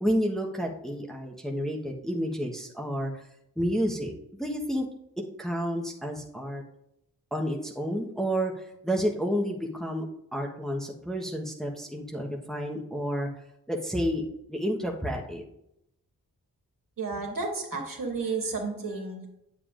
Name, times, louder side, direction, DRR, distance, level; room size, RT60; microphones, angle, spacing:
voice 1, 0.0-3.1 3.6-4.1 4.4-4.9 5.4-6.6 7.3-10.0 10.3-13.3 13.7-14.2 14.5-15.4, equal, ahead, 0 dB, 1.2 m, -30 dB
voice 2, 17.0-19.3, right 4 dB, 60° right, 0 dB, 2.0 m, -32 dB
8.4 x 7.3 x 2.5 m, 0.80 s
cardioid pair, 40°, 38 cm